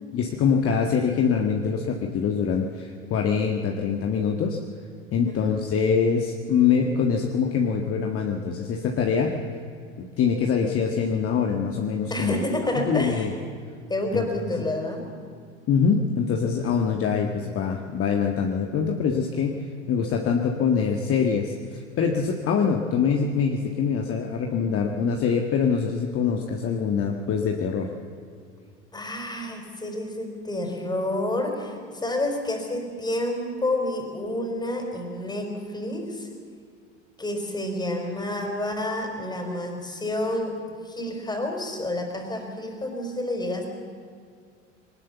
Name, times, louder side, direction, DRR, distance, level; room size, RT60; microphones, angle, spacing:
voice 1, 0.1-4.6 5.1-9.3 10.0-12.4 12.8-13.3 14.1-14.3 15.7-27.9, left 6 dB, 40° left, 3 dB, 1.7 m, -24 dB
voice 2, 12.1-13.3 13.9-15.1 28.9-36.3 37.2-40.6 40.8-43.7, left 1 dB, 10° left, 4 dB, 4.5 m, -29 dB
20.5 x 19.0 x 7.2 m, 2.2 s
hypercardioid pair, 85°, 36 cm